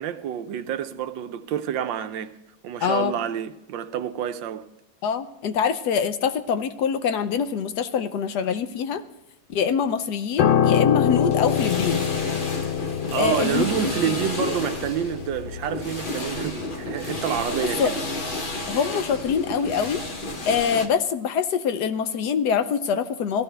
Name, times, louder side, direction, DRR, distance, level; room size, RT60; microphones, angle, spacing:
voice 1, 0.0-2.3 2.6-4.6 13.1-17.9, right 9 dB, 75° right, 1.3 m, -28 dB
voice 2, 2.8-3.2 5.0-9.0 9.5-12.1 13.1-14.6 17.8-17.9 18.7-20.0 20.4-23.4, left 7 dB, 65° left, 1.1 m, -24 dB
Piano, 10.4-19.8 20.0-20.3, left 9 dB, 90° left, 0.6 m, -26 dB
sound 1, 11.0-20.9, left 1 dB, 35° left, 1.0 m, -32 dB
16.5 x 14.0 x 3.3 m
omnidirectional pair, 2.1 m